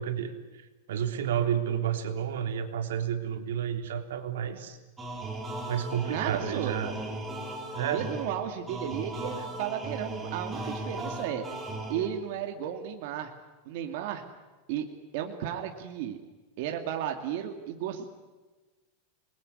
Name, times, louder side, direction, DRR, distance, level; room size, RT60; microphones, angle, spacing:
voice 1, 0.0-4.8 5.7-7.0 7.7-8.0, right 9 dB, 85° right, 7 dB, 3.3 m, -31 dB
sound 1, 5.0-12.4, right 2 dB, 10° right, 2.9 m, -37 dB
voice 2, 6.0-6.8 7.8-11.4 11.9-13.3 13.7-14.2 14.7-14.9 15.1-16.2 16.6-18.2, right 10 dB, 45° right, 4 dB, 2.3 m, -34 dB
28.0 x 21.0 x 9.8 m, 1.3 s
supercardioid pair, 175°, 0 cm